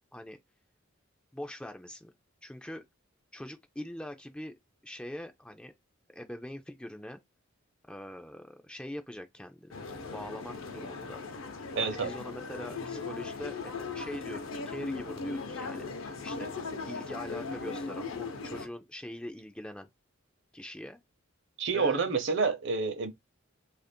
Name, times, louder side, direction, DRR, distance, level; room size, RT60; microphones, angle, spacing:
voice 1, 1.3-2.1 2.4-2.8 3.3-4.5 4.8-5.7 6.1-7.2 7.9-9.8 10.1-11.2 11.8-16.5 16.9-19.9 20.5-21.0 21.7-22.0, left 1 dB, 5° left, 0.3 m, -43 dB
sound 1, 9.7-18.7, left 4 dB, 70° left, 0.7 m, -38 dB
voice 2, 11.8-12.1 21.6-23.1, right 4 dB, 60° right, 0.7 m, -28 dB
2.9 x 2.5 x 4.2 m
head